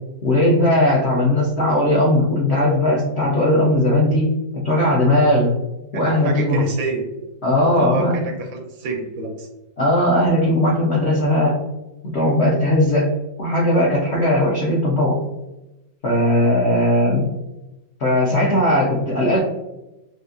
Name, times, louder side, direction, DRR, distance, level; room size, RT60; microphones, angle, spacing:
voice 1, 0.2-5.5 5.9-6.6 7.4-8.1 9.8-11.6 12.0-13.1 13.4-15.2 16.0-17.3 18.0-19.4, left 1 dB, 65° left, -5 dB, 0.6 m, -18 dB
voice 2, 5.9-7.0 7.8-9.5, right 3 dB, 70° right, 3 dB, 1.1 m, -28 dB
4.1 x 2.5 x 2.4 m, 0.98 s
omnidirectional pair, 2.0 m